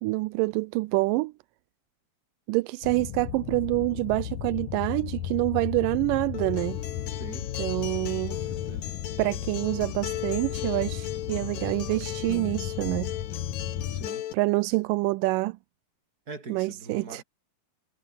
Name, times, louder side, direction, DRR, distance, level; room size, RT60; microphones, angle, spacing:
voice 1, 0.0-1.3 2.5-6.8 7.6-8.4 9.2-13.1 14.3-15.6 16.5-17.2, right 22 dB, 85° right, 2.2 m, -27 dB
sound 1, 2.8-14.1, left 10 dB, 65° left, 2.9 m, -35 dB
Acoustic guitar, 6.3-14.3, left 12 dB, 85° left, 3.1 m, -37 dB
voice 2, 7.1-7.5 8.3-9.0 13.9-14.3 16.3-17.2, right 3 dB, 25° right, 4.9 m, -43 dB
omnidirectional pair, 3.8 m